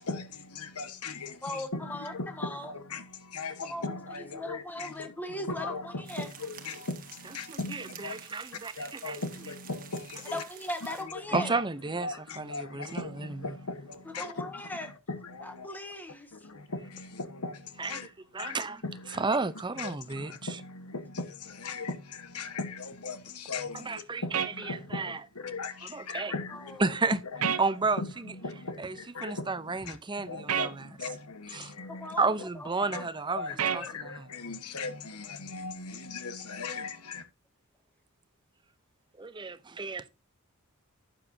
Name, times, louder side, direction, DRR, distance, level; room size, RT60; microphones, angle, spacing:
voice 1, 0.0-8.3 8.5-10.4 10.8-11.6 11.9-15.7 16.3-18.1 18.4-27.6 27.9-32.3 32.9-37.3, left 3 dB, 85° left, 1.4 m, -39 dB
voice 2, 1.4-2.7 3.7-3.8 4.3-6.3 10.3-11.5 14.2-14.9 15.4-16.5 26.7-26.9 31.9-33.9, left 1 dB, 10° left, 1.5 m, -39 dB
sound 1, 6.0-11.0, right 8 dB, 40° right, 1.6 m, -49 dB
voice 3, 7.5-7.8 8.1-8.7 9.0-9.2 11.3-12.1 12.4-13.0 17.8-17.9 18.3-18.8 19.2-20.3 23.9-24.4 24.9-25.2 25.9-26.3 26.8-27.2 27.6-28.0 28.8-29.0 29.2-30.8 31.5-31.7 32.2-33.5 33.7-33.8 34.1-34.2 39.2-40.1, right 3 dB, 20° right, 0.6 m, -31 dB
sound 2, 24.3-24.5 27.4-27.6 30.5-30.7 33.6-33.8, right 8 dB, 80° right, 0.9 m, -28 dB
12.0 x 8.8 x 2.8 m
head